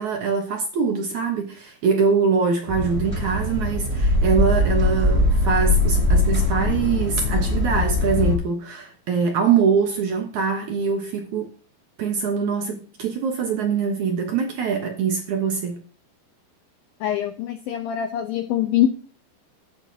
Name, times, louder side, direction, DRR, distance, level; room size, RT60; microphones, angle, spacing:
voice 1, 0.0-11.5 12.0-15.8, right 6 dB, 75° right, 1.8 m, -23 dB
sound 1, 2.7-8.3, left 2 dB, 10° right, 5.2 m, -21 dB
voice 2, 17.0-18.9, left 12 dB, 80° left, 2.1 m, -23 dB
15.0 x 14.0 x 2.8 m
omnidirectional pair, 5.2 m